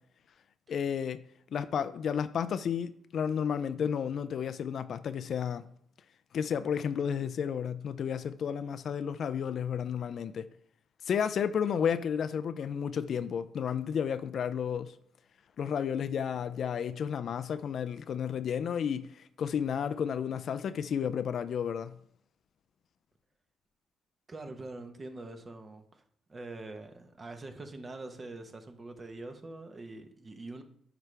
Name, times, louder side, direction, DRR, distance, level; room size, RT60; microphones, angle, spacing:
voice 1, 0.7-1.2 1.5-5.7 6.3-10.5 11.1-14.9 15.6-21.9, left 7 dB, 60° left, 0.4 m, -32 dB
voice 2, 24.3-26.0 26.3-30.6, right 2 dB, 30° right, 1.0 m, -44 dB
9.1 x 4.9 x 3.3 m
cardioid pair, 90°, 0 cm